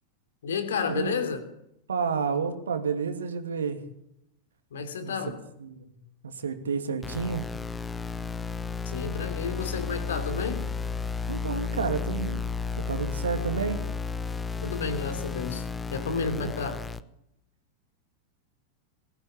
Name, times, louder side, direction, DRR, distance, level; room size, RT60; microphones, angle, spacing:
voice 1, 0.4-1.4 4.7-5.4 8.8-10.7 14.6-15.6 15.9-16.8, left 5 dB, 65° left, 3.1 m, -31 dB
voice 2, 1.9-3.8 5.0-5.1 5.6-6.0 6.2-7.5 11.3-12.4 12.8-13.8 16.3-16.5, right 5 dB, 70° right, 2.7 m, -30 dB
sound 1, 7.0-17.0, left 5 dB, 15° left, 1.0 m, -33 dB
22.0 x 16.0 x 8.6 m
figure-of-eight pair, 90°, 0 cm